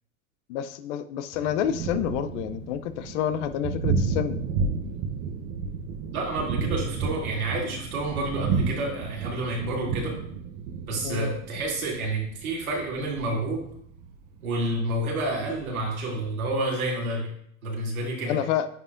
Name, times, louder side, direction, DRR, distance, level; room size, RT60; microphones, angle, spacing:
voice 1, 0.5-4.4 11.0-11.3 18.3-18.7, left 10 dB, 60° left, 12 dB, 0.6 m, -28 dB
Thunder, 1.3-16.6, right 5 dB, 45° right, 0.9 m, -32 dB
voice 2, 6.1-10.1 10.9-13.6 14.4-17.3 17.6-18.4, right 2 dB, 85° right, -3 dB, 2.7 m, -29 dB
9.4 x 4.9 x 2.5 m, 0.68 s
hypercardioid pair, 105°, 42 cm